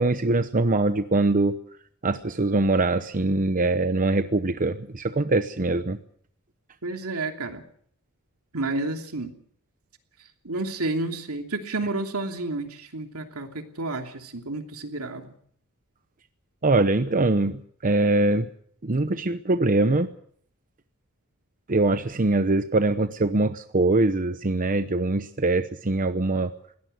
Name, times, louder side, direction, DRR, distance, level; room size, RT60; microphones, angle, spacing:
voice 1, 0.0-1.6 2.0-6.0 16.6-18.5 18.8-20.1 21.7-26.5, right 2 dB, 40° right, 10 dB, 0.9 m, -23 dB
voice 2, 6.8-7.6 8.5-9.3 10.4-15.4, right 2 dB, 75° right, 5 dB, 2.9 m, -30 dB
21.0 x 18.0 x 7.9 m, 0.63 s
head